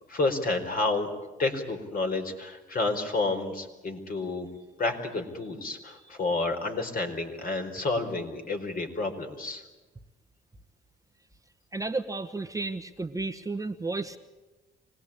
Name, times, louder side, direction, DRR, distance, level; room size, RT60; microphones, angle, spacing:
voice 1, 0.1-1.1 1.4-4.5 4.8-9.6, left 3 dB, 45° left, 4 dB, 4.4 m, -30 dB
voice 2, 11.7-14.2, right 3 dB, 15° right, 6 dB, 1.1 m, -32 dB
25.0 x 19.0 x 8.7 m, 1.2 s
cardioid pair, 90°, 20 cm